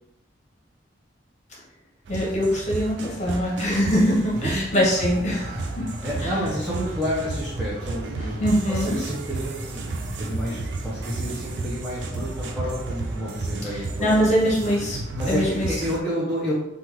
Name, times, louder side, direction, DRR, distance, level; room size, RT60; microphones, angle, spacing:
voice 1, 2.1-5.8 6.2-6.3 8.4-8.9 13.7-15.0 15.3-15.7, equal, 40° left, -4 dB, 1.0 m, -23 dB
sound 1, 2.1-16.0, right 3 dB, 70° right, 0.4 m, -33 dB
sound 2, 5.1-15.1, left 1 dB, 40° right, 1.1 m, -38 dB
voice 2, 6.0-14.4 15.1-16.5, equal, 5° right, -8 dB, 0.7 m, -30 dB
3.3 x 2.3 x 3.0 m, 0.84 s
head